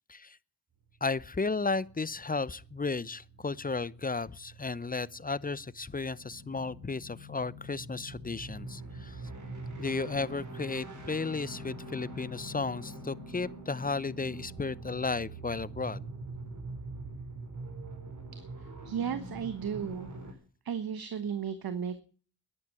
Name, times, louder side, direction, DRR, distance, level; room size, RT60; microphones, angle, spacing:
voice 1, 1.0-9.2 9.8-16.0, left 4 dB, 20° left, 0.7 m, -34 dB
sound 1, 1.3-20.3, right 2 dB, 50° right, 5.3 m, -44 dB
voice 2, 18.3-20.1 20.6-22.0, right 7 dB, 65° right, 1.4 m, -35 dB
11.0 x 11.0 x 9.5 m
supercardioid pair, 40°, 39 cm